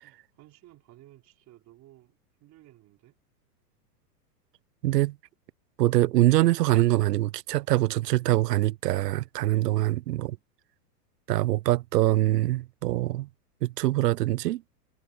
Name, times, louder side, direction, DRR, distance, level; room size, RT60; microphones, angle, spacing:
voice 1, 0.0-3.2 9.5-10.0, right 16 dB, 35° right, 4.6 m, -56 dB
voice 2, 4.8-5.2 5.8-10.4 11.3-13.3 13.6-14.6, right 16 dB, 80° right, 0.7 m, -24 dB
hypercardioid pair, 130°, 48 cm